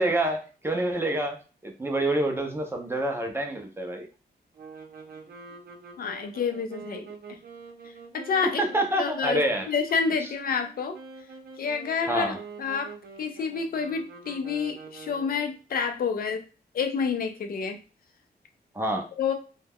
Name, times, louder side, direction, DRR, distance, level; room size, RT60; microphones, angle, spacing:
voice 1, 0.0-1.4 1.6-4.1 8.6-9.7 12.1-12.4 18.7-19.0, right 1 dB, 15° right, 3 dB, 0.4 m, -27 dB
sound 1, 4.5-15.5, right 5 dB, 65° right, 0.6 m, -46 dB
voice 2, 6.0-7.4 7.8-8.6 9.0-11.0 11.6-12.9 13.2-16.4 16.7-17.8 19.2-19.4, left 6 dB, 60° left, 6 dB, 0.4 m, -29 dB
2.3 x 2.1 x 3.4 m, 0.35 s
wide cardioid pair, 170°, 17 cm